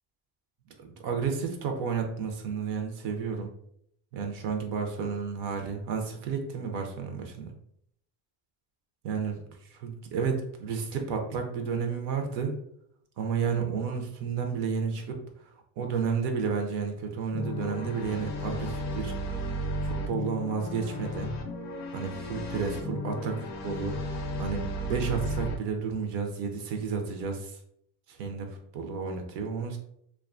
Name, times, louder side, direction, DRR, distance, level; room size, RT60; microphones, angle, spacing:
voice 1, 0.8-3.5 4.1-7.5 9.0-9.4 9.7-12.5 13.2-15.2 15.8-19.1 19.8-21.3 21.9-23.4 23.6-23.9 24.4-27.5 28.1-29.8, right 5 dB, 60° right, 4 dB, 0.5 m, -31 dB
sound 1, 17.3-25.6, equal, 40° left, 0.5 m, -34 dB
2.4 x 2.2 x 2.4 m, 0.70 s
cardioid pair, 150°, 46 cm